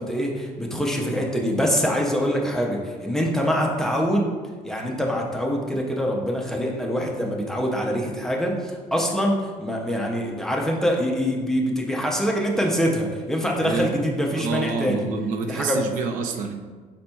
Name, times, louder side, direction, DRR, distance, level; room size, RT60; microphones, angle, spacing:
voice 1, 0.0-4.3 4.6-15.1 15.5-15.9, equal, 5° left, -1 dB, 0.4 m, -24 dB
voice 2, 13.6-13.9 14.3-16.5, right 4 dB, 70° right, 5 dB, 0.5 m, -27 dB
5.2 x 4.1 x 2.2 m, 1.5 s
cardioid pair, 160°, 14 cm